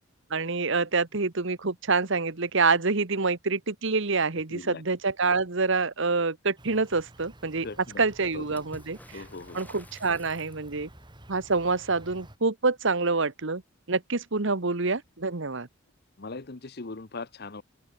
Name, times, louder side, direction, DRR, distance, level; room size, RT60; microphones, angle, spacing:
voice 1, 0.3-7.7 8.0-9.2 9.5-10.9 11.3-13.6 13.9-15.7, right 4 dB, 60° right, 1.3 m, -26 dB
voice 2, 4.5-4.8 7.6-8.0 8.3-8.6 9.1-9.6 16.2-17.6, left 3 dB, 50° left, 1.0 m, -40 dB
Insect, 6.6-12.4, right 1 dB, 20° right, 3.8 m, -51 dB
Water / Splash splatter, 8.5-10.9 14.2-14.3 14.6-15.4 16.4-16.5, left 1 dB, 10° left, 3.4 m, -52 dB
open air
head